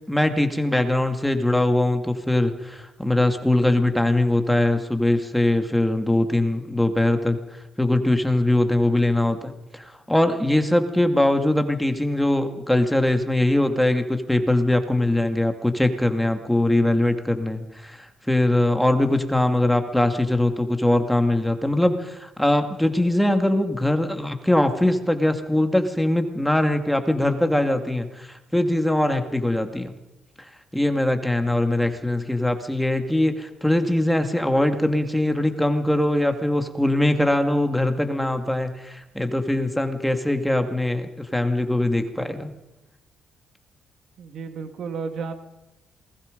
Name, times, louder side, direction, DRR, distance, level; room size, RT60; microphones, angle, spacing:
voice 1, 0.1-7.4 7.8-29.9 30.7-42.5, left 1 dB, 5° left, 6 dB, 2.3 m, -22 dB
voice 2, 44.2-45.4, right 5 dB, 65° right, 7 dB, 2.3 m, -32 dB
27.5 x 20.0 x 5.3 m, 0.97 s
cardioid pair, 90°, 0 cm